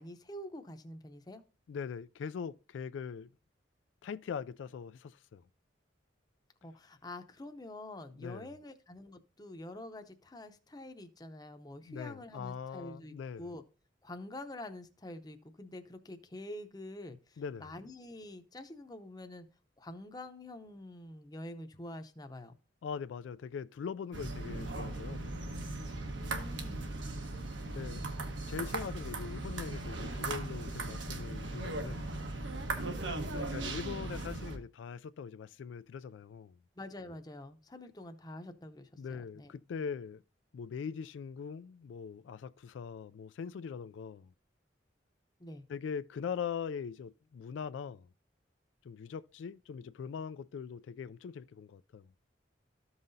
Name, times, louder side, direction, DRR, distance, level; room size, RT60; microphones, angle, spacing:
voice 1, 0.0-1.4 6.6-13.6 14.0-19.5 19.8-22.5 26.2-27.0 33.2-33.5 36.8-39.5 45.4-45.6, left 1 dB, 20° left, 0.7 m, -47 dB
voice 2, 1.7-3.3 4.0-5.4 8.2-8.5 11.8-13.5 17.4-17.7 22.8-25.3 27.7-28.0 28.3-32.1 33.2-36.6 39.0-40.2 40.5-44.3 45.7-48.1 48.8-52.1, left 6 dB, 80° left, 0.3 m, -41 dB
sound 1, 24.1-34.6, right 2 dB, 85° right, 1.3 m, -38 dB
13.5 x 5.6 x 2.7 m
head